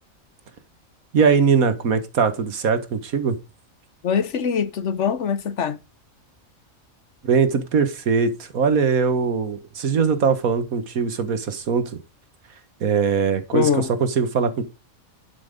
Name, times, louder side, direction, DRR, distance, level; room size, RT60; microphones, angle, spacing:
voice 1, 1.1-3.4 7.2-12.0 12.8-14.6, right 5 dB, 80° right, 1.8 m, -21 dB
voice 2, 4.0-5.8 13.5-13.9, left 7 dB, 60° left, 1.1 m, -23 dB
11.5 x 6.2 x 5.2 m
omnidirectional pair, 1.5 m